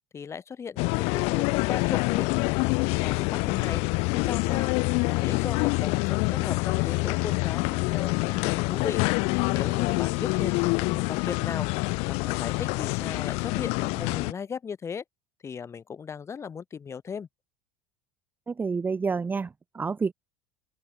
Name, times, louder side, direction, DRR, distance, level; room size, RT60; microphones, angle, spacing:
voice 1, 0.1-2.4 3.0-3.8 4.1-4.7 5.1-9.0 9.5-11.7 12.1-15.0 15.4-17.3, left 6 dB, 25° left, 7.1 m, -37 dB
sound 1, 0.8-14.3, left 29 dB, 60° left, 0.6 m, -26 dB
voice 2, 18.5-20.1, right 5 dB, 15° right, 1.3 m, -29 dB
open air
supercardioid pair, 135°, 12 cm